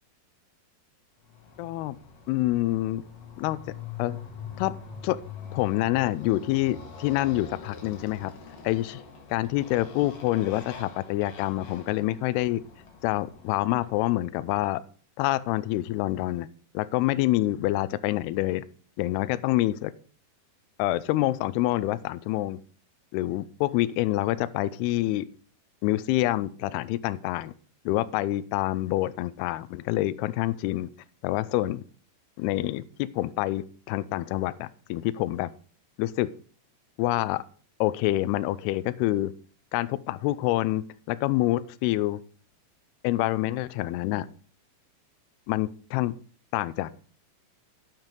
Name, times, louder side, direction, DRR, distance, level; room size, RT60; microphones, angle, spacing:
Motorcycle, 1.3-14.0, left 6 dB, 60° left, 2.8 m, -44 dB
voice 1, 1.6-2.0 2.3-3.0 3.4-3.6 4.0-4.2 4.6-4.8 5.0-5.2 5.5-8.3 8.6-9.0 9.3-12.6 13.0-14.8 15.2-16.5 16.7-18.6 19.0-19.9 20.8-22.6 23.1-25.3 25.8-27.5 27.9-30.9 31.2-31.8 32.4-35.5 36.0-36.3 37.0-37.4 37.8-39.3 39.7-42.2 43.0-44.3 45.5-46.1 46.5-47.0, left 16 dB, 85° left, 15 dB, 2.3 m, -27 dB
8.9 x 7.5 x 5.3 m, 0.41 s
omnidirectional pair, 5.1 m